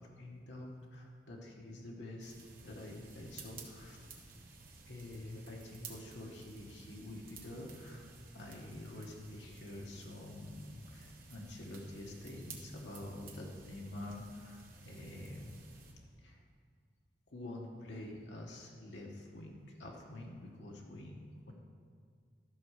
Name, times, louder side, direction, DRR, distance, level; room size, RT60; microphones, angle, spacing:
voice 1, 0.0-4.1 4.9-15.6 16.2-16.4 17.3-21.5, left 1 dB, 80° left, -1 dB, 1.2 m, -47 dB
sound 1, 2.2-15.9, right 4 dB, 55° right, 1.4 m, -54 dB
13.0 x 4.7 x 6.5 m, 2.1 s
head